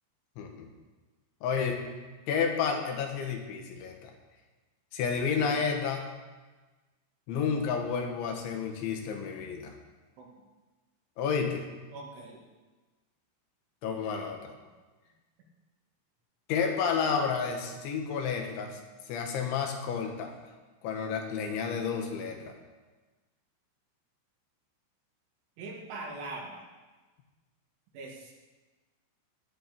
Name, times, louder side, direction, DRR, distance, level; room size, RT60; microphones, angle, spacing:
voice 1, 0.4-0.7 1.4-1.8 2.3-4.1 4.9-6.0 7.3-9.7 11.2-11.6 13.8-14.5 16.5-18.8 19.1-20.3 20.8-22.5, left 6 dB, 70° left, 3 dB, 3.7 m, -31 dB
voice 2, 11.9-12.4 25.6-26.6 27.9-28.3, right 2 dB, 70° right, -2 dB, 4.7 m, -41 dB
17.5 x 11.0 x 5.3 m, 1.3 s
omnidirectional pair, 5.9 m